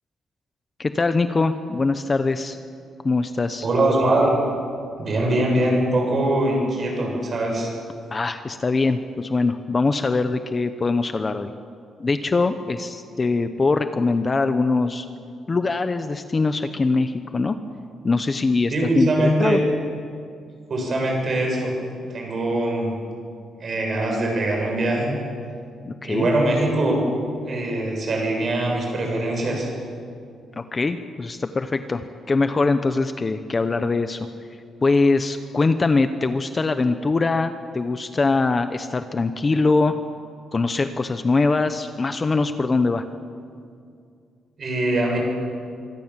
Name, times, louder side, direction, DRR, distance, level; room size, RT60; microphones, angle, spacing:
voice 1, 0.8-2.6 3.0-3.7 8.1-11.5 12.0-15.1 15.5-17.6 18.0-19.6 25.8-26.3 30.6-34.3 34.8-40.0 40.5-43.1, left 3 dB, 25° left, 9 dB, 0.9 m, -22 dB
voice 2, 3.6-4.4 5.0-7.7 18.7-19.6 20.7-21.7 22.0-22.9 23.6-25.2 26.0-27.0 27.4-29.7 44.6-45.2, right 1 dB, 35° right, 0 dB, 7.9 m, -22 dB
25.5 x 24.0 x 7.5 m, 2.3 s
cardioid pair, 165°, 0 cm